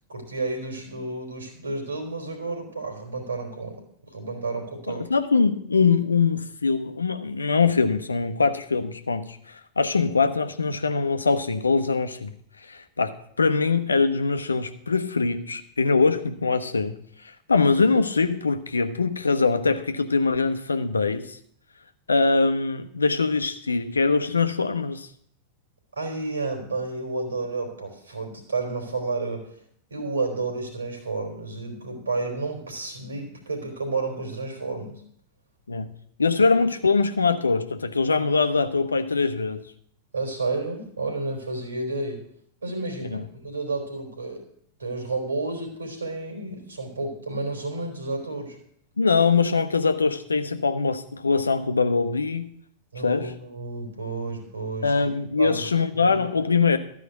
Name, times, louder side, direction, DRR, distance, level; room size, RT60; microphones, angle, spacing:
voice 1, 0.1-3.8 4.1-5.1 25.9-29.6 29.9-35.0 40.1-42.2 42.6-44.5 44.8-48.6 52.9-55.1 55.4-55.7 56.0-56.2, right 3 dB, 75° right, 3.5 m, -31 dB
voice 2, 4.9-12.3 12.7-17.0 17.5-21.4 22.1-25.1 35.7-35.9 36.2-39.6 43.1-43.2 49.0-52.5 53.0-53.3 54.8-56.8, left 4 dB, 75° left, 0.8 m, -23 dB
13.0 x 5.0 x 8.0 m
figure-of-eight pair, 90°, 0 cm